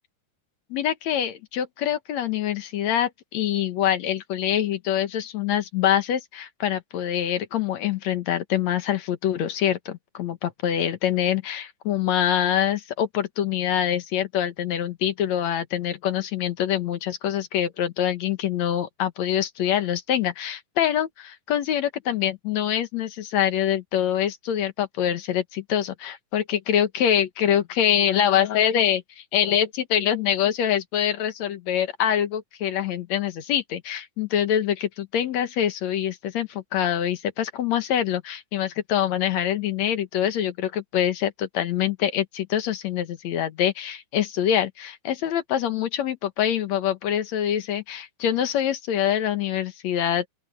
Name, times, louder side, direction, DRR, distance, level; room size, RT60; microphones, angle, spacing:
voice 1, 0.7-50.3, left 10 dB, 65° left, 2.2 m, -25 dB
open air
omnidirectional pair, 3.8 m